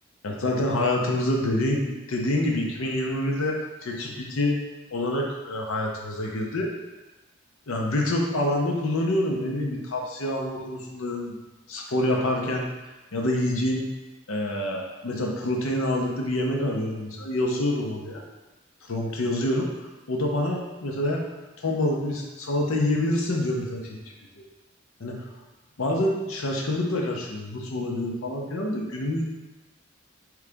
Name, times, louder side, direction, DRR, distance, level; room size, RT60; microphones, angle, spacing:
voice 1, 0.2-4.6 4.9-6.7 7.7-11.4 11.7-12.7 13.1-13.9 14.3-18.2 18.8-19.7 20.1-21.2 21.6-24.0 25.0-25.2 25.8-29.2, left 1 dB, 90° left, 0 dB, 0.7 m, -26 dB
3.8 x 3.2 x 3.4 m, 1.1 s
head